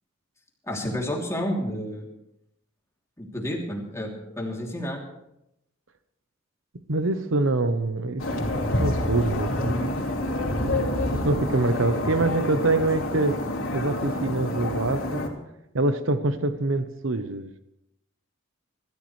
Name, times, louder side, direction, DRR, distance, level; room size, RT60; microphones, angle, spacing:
voice 1, 0.7-2.1 3.2-5.0, equal, 15° left, -1 dB, 3.0 m, -30 dB
voice 2, 6.9-8.4 8.8-9.9 10.6-13.4 13.7-15.3 15.7-17.6, right 2 dB, 70° right, 10 dB, 0.9 m, -25 dB
sound 1, 8.2-15.3, left 1 dB, 80° left, 3.2 m, -28 dB
25.5 x 14.0 x 3.3 m, 0.82 s
head